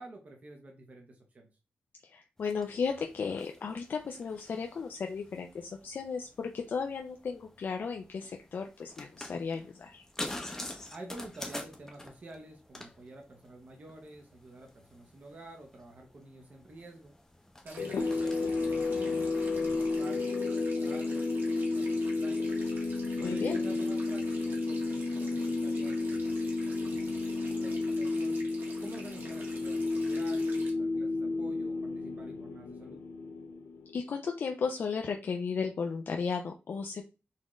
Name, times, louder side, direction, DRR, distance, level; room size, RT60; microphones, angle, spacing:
voice 1, 0.0-1.5 10.9-17.1 17.6-22.5 23.1-28.4 28.8-33.0, right 2 dB, 40° right, 2 dB, 0.8 m, -49 dB
voice 2, 2.0-10.0 23.2-23.6 33.9-37.0, left 5 dB, 55° left, 3 dB, 0.4 m, -35 dB
sound 1, 2.4-19.1, left 1 dB, 10° left, 0.7 m, -47 dB
sound 2, 17.7-30.7, right 2 dB, 60° right, 1.4 m, -50 dB
sound 3, 17.8-34.1, left 3 dB, 85° left, 0.7 m, -32 dB
4.1 x 3.6 x 3.1 m, 0.32 s
wide cardioid pair, 170°, 4 cm